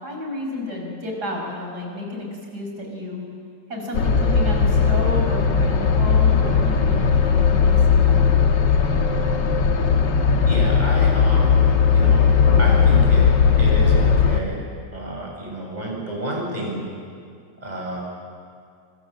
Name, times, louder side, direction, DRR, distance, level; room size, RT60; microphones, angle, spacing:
voice 1, 0.0-2.3 2.5-3.2 3.7-8.3, left 1 dB, 55° right, 0 dB, 6.5 m, -31 dB
sound 1, 3.9-14.4, left 6 dB, 65° left, 2.0 m, -17 dB
voice 2, 10.5-11.6 11.9-12.3 12.6-13.3 13.6-14.6 14.9-16.9 17.6-18.0, right 1 dB, 20° right, -3 dB, 7.8 m, -30 dB
26.0 x 24.5 x 7.8 m, 2.2 s
omnidirectional pair, 2.1 m